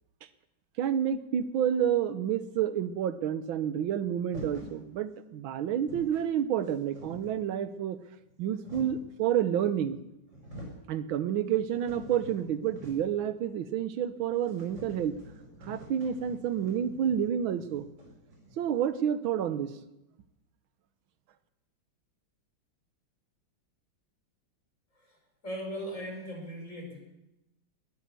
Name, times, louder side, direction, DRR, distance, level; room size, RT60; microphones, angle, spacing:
voice 1, 0.8-8.0 8.4-10.0 10.9-15.2 15.7-17.8 18.6-19.7, right 9 dB, 90° right, 12 dB, 1.7 m, -29 dB
sound 1, 4.3-4.8 5.4-5.5 5.7-6.3 6.6-7.5 8.2-9.1 9.9-10.0 10.3-10.9 11.3-13.2 13.5-13.6 13.9-14.0 14.4-18.9, equal, 65° right, 5.9 m, -47 dB
voice 2, 25.4-27.0, equal, 40° left, 0 dB, 5.6 m, -38 dB
20.5 x 9.7 x 6.9 m, 0.92 s
omnidirectional pair, 2.1 m